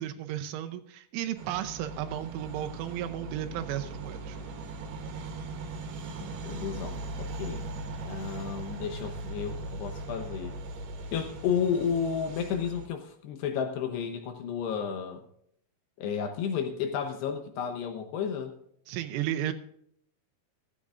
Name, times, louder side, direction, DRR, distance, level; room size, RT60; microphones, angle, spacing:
voice 1, 0.0-4.4 18.9-19.5, right 12 dB, 80° right, 7 dB, 3.1 m, -34 dB
sound 1, 1.4-12.9, right 2 dB, 65° right, 3.0 m, -39 dB
voice 2, 6.2-7.7 8.0-10.6 11.1-15.2 16.0-18.6, left 7 dB, 75° left, 7 dB, 2.5 m, -32 dB
15.5 x 14.0 x 2.5 m, 0.69 s
omnidirectional pair, 5.9 m